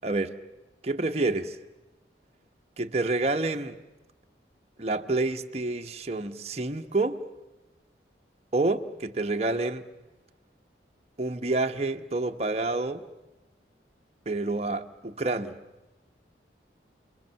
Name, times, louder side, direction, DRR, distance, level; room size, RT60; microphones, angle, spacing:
voice 1, 0.0-0.4 0.8-1.6 2.8-3.8 4.8-7.2 8.5-9.8 11.2-13.0 14.3-15.6, right 2 dB, 35° right, 1.0 m, -28 dB
29.5 x 22.5 x 7.0 m
head